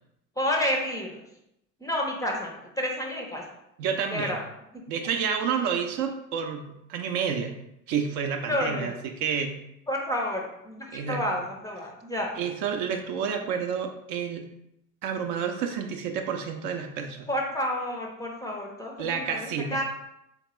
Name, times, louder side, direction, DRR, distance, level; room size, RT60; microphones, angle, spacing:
voice 1, 0.4-1.2 1.8-3.4 4.1-4.4 8.5-8.9 9.9-12.3 17.3-19.8, left 1 dB, 10° left, 0 dB, 0.5 m, -30 dB
voice 2, 3.8-4.3 4.9-7.5 7.9-9.5 10.9-11.2 12.4-14.5 15.0-17.3 19.0-19.8, right 7 dB, 50° right, 5 dB, 0.5 m, -29 dB
3.5 x 2.8 x 3.0 m, 0.82 s
figure-of-eight pair, 65°, 43 cm